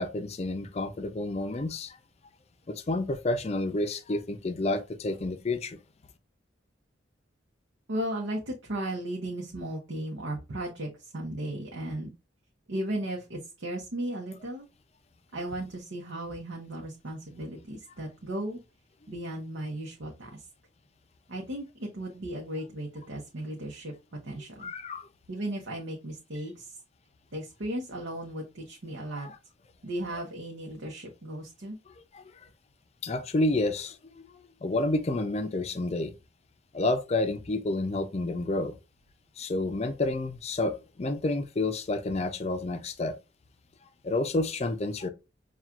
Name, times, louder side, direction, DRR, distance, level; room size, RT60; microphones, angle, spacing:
voice 1, 0.0-2.0 2.7-5.8 24.6-25.1 29.2-29.4 32.1-32.2 33.0-34.0 34.6-36.1 36.7-38.7 39.4-43.2 44.0-45.1, left 2 dB, 35° left, 0.4 m, -29 dB
voice 2, 7.9-12.1 12.7-14.7 15.3-18.6 19.1-20.4 21.3-23.9 24.2-24.7 25.3-26.8 27.3-29.3 29.8-31.8, right 1 dB, 85° right, 0.8 m, -36 dB
5.8 x 2.4 x 2.4 m
head